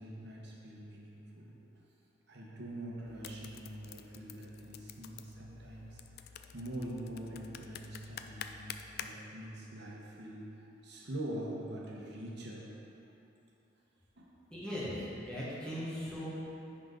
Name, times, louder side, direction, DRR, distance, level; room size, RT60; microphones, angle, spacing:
voice 1, 0.0-1.5 2.3-12.6 14.2-14.3 15.9-16.1, right 1 dB, 60° right, -3 dB, 1.1 m, -44 dB
sound 1, 3.0-9.1, left 8 dB, 55° left, 0.3 m, -49 dB
voice 2, 14.5-16.3, equal, 5° left, -10 dB, 1.6 m, -39 dB
10.0 x 3.9 x 3.9 m, 3.0 s
head